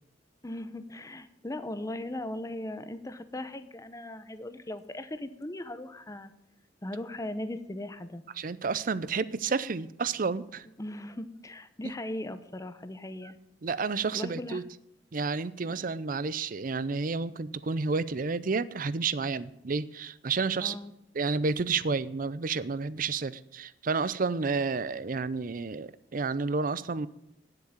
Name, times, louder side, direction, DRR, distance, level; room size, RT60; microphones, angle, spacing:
voice 1, 0.4-6.3 6.8-8.2 10.8-13.4 14.1-14.6 20.6-20.9, left 1 dB, 20° left, 11 dB, 0.8 m, -38 dB
voice 2, 8.4-10.7 13.6-14.6 15.1-20.8 21.1-27.1, right 4 dB, 50° right, 18 dB, 0.6 m, -30 dB
9.9 x 7.8 x 8.8 m, 0.83 s
head